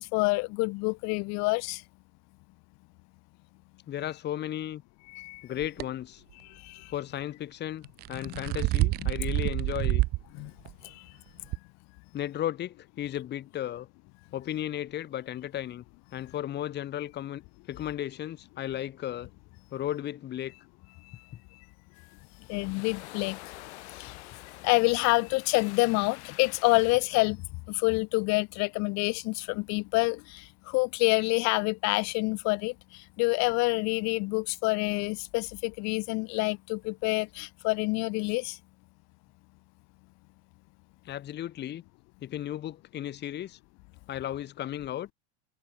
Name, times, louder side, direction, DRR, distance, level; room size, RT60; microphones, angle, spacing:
voice 1, 0.0-1.8 5.1-5.4 6.7-6.8 8.3-8.4 9.0-9.1 10.3-10.5 22.5-23.4 24.0-24.1 24.6-27.4 27.7-30.4 30.7-32.7 33.2-38.6, left 28 dB, 50° left, 3.5 m, -27 dB
voice 2, 3.9-4.8 5.4-6.2 6.9-7.8 8.1-10.0 12.1-13.9 14.3-15.8 16.1-17.4 17.7-19.3 19.7-20.5 41.0-41.8 42.2-43.6 44.1-45.1, left 12 dB, 30° left, 3.1 m, -35 dB
sound 1, 5.6-5.8 7.8-10.2 10.7-10.8 11.5-11.6, right 20 dB, 30° right, 0.4 m, -27 dB
sound 2, 22.0-27.0, left 18 dB, 75° left, 7.4 m, -47 dB
supercardioid pair, 145°, 34 cm